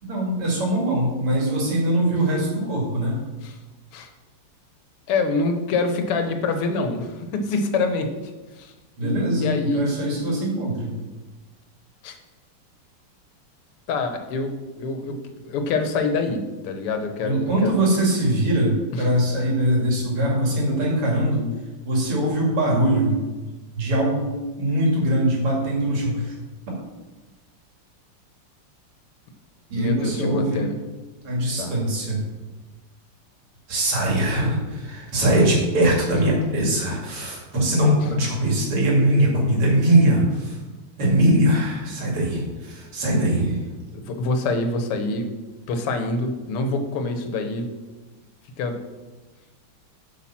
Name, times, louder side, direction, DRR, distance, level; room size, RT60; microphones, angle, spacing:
voice 1, 0.0-3.2 9.0-10.9 17.2-21.5 21.8-23.2 23.7-26.3 29.7-30.7 31.2-32.2 33.7-40.6 41.0-43.6, right 1 dB, 85° right, -2 dB, 3.2 m, -21 dB
voice 2, 5.1-8.1 8.6-8.7 9.0-9.8 12.0-12.2 13.9-17.8 29.8-30.7 31.6-31.7 43.1-43.3 43.9-45.3 45.7-47.7 48.6-48.8, left 3 dB, 90° left, 6 dB, 1.9 m, -26 dB
8.4 x 5.7 x 5.9 m, 1.2 s
omnidirectional pair, 2.4 m